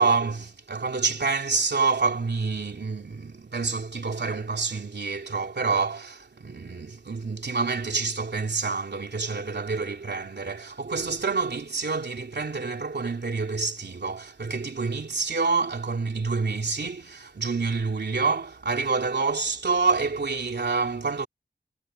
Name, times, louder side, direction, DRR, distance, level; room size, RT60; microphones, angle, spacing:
voice 1, 0.0-21.3, right 4 dB, 85° right, 3.1 m, -27 dB
wide cardioid pair, 65°, 17 cm